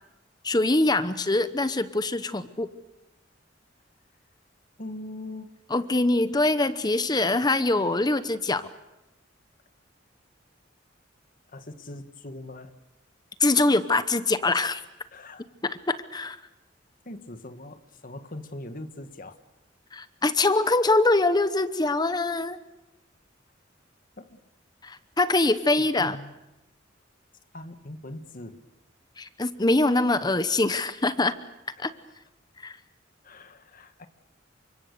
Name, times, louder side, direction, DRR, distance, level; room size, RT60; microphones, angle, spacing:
voice 1, 0.4-2.7 5.7-8.7 13.4-14.8 15.6-16.4 19.9-22.6 24.8-26.2 29.2-31.3 31.8-31.9 32.6-32.8, left 2 dB, 20° left, 12 dB, 0.9 m, -23 dB
voice 2, 4.8-5.5 11.5-12.8 15.1-15.5 17.1-19.4 24.2-24.4 25.8-26.4 27.5-28.6 33.2-34.1, left 1 dB, 45° left, 9 dB, 1.7 m, -41 dB
29.5 x 25.0 x 6.9 m, 0.94 s
head